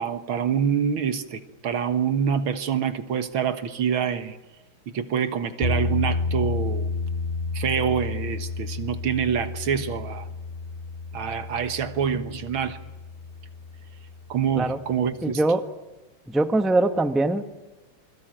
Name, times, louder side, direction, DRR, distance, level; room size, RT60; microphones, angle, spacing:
voice 1, 0.0-4.4 4.9-6.9 7.5-10.3 11.1-12.8 14.3-15.4, right 7 dB, 70° right, 2.3 m, -26 dB
sound 1, 5.6-14.5, left 3 dB, 35° left, 3.8 m, -31 dB
voice 2, 15.2-15.6 16.3-17.5, right 2 dB, ahead, 1.0 m, -22 dB
27.5 x 22.5 x 9.1 m
omnidirectional pair, 2.3 m